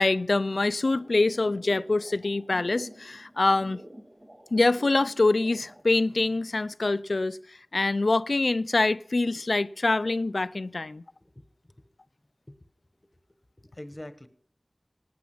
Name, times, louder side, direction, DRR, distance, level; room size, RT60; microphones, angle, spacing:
voice 1, 0.0-3.8 4.5-7.4 7.7-11.0, left 2 dB, 80° left, 0.5 m, -25 dB
sound 1, 0.8-5.8, equal, 35° right, 2.4 m, -49 dB
voice 2, 13.6-14.3, left 1 dB, 30° left, 1.3 m, -44 dB
18.5 x 9.5 x 6.0 m
wide cardioid pair, 50°, 0 cm